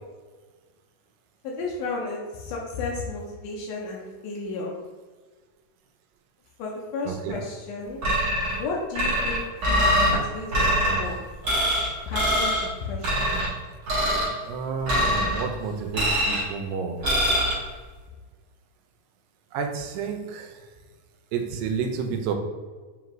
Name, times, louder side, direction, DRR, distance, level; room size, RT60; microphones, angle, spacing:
voice 1, 1.4-4.8 6.6-8.0 8.6-11.2 12.1-13.3, left 3 dB, 80° left, -2 dB, 1.9 m, -33 dB
voice 2, 7.1-7.4 13.3-13.4 14.5-17.0 19.5-20.6 21.3-22.3, right 6 dB, 85° right, 4 dB, 2.2 m, -30 dB
sound 1, 8.0-8.6 8.9-10.2 10.5-11.0 11.4-11.9 12.1-12.6 13.0-13.5 13.9-14.3 14.9-15.4 15.9-16.5 17.0-17.5, equal, 55° right, 1.2 m, -23 dB
5.3 x 2.4 x 2.9 m, 1.4 s
omnidirectional pair, 4.0 m